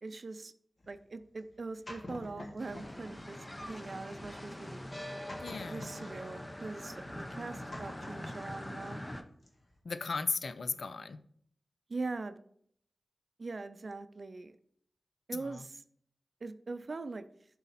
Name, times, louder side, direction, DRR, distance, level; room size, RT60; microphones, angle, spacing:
voice 1, 0.0-0.5 0.9-4.8 5.7-9.0 11.9-12.4 13.4-14.6 15.3-15.8 16.4-17.3, right 3 dB, 60° right, 11 dB, 0.5 m, -42 dB
sound 1, 0.8-3.1 3.4-9.1 9.4-9.7, left 1 dB, 50° left, 1.6 m, -49 dB
sound 2, 2.6-9.2, left 1 dB, 20° left, 0.8 m, -43 dB
voice 2, 5.4-5.9 9.8-11.2 15.3-15.6, left 4 dB, 70° left, 13 dB, 0.5 m, -36 dB
11.5 x 4.0 x 4.1 m, 0.65 s
cardioid pair, 60°, 0 cm